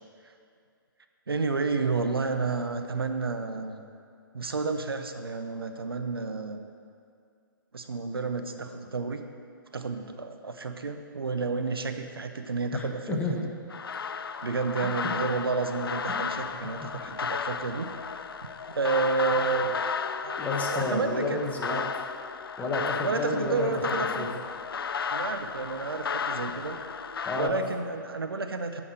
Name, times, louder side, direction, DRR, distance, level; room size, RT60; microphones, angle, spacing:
voice 1, 1.3-3.8 4.3-6.6 7.7-9.2 9.7-13.5 14.4-17.9 18.7-19.8 20.2-20.4 20.7-21.4 21.7-21.8 23.0-24.3 25.1-26.8 27.3-28.8, right 4 dB, 80° right, 7 dB, 0.7 m, -30 dB
voice 2, 12.7-13.4 15.0-15.1 16.1-16.2 17.1-17.2 20.4-22.1 22.6-24.3 27.2-27.6, left 2 dB, 10° left, 0 dB, 1.0 m, -31 dB
sound 1, 13.7-27.5, left 6 dB, 75° left, 0.4 m, -33 dB
8.6 x 6.4 x 5.1 m, 2.3 s
figure-of-eight pair, 125°, 12 cm